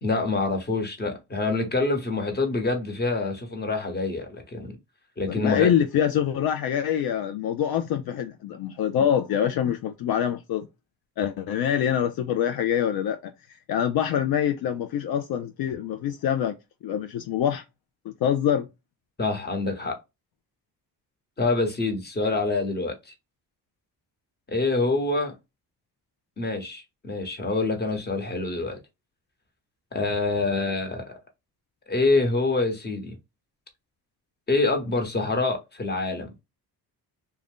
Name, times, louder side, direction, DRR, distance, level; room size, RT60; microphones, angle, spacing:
voice 1, 0.0-4.7 5.2-5.7 19.2-20.0 21.4-23.1 24.5-25.3 26.4-28.8 29.9-31.1 31.9-33.2 34.5-36.3, left 3 dB, 25° left, 1.1 m, -26 dB
voice 2, 5.3-10.7 11.2-13.3 13.7-16.5 16.8-17.6 18.0-18.7, left 9 dB, 65° left, 0.5 m, -25 dB
2.5 x 2.3 x 3.4 m
cardioid pair, 90°, 39 cm